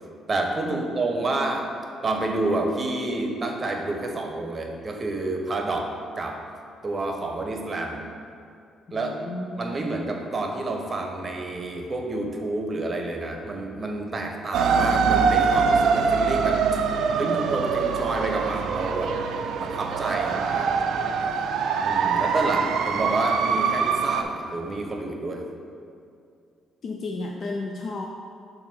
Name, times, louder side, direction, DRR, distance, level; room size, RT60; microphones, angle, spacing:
voice 1, 0.3-1.7 2.0-5.9 6.2-6.4 6.8-8.1 8.9-9.2 9.6-16.6 17.2-19.1 19.6-20.8 21.8-25.5, right 2 dB, 35° right, 2 dB, 0.8 m, -29 dB
voice 2, 8.9-9.6 26.8-28.1, left 3 dB, 55° left, 1 dB, 0.4 m, -33 dB
sound 1, 14.5-24.2, right 5 dB, 75° right, 0.3 m, -23 dB
7.2 x 2.6 x 5.5 m, 2.4 s
cardioid pair, 90°, 0 cm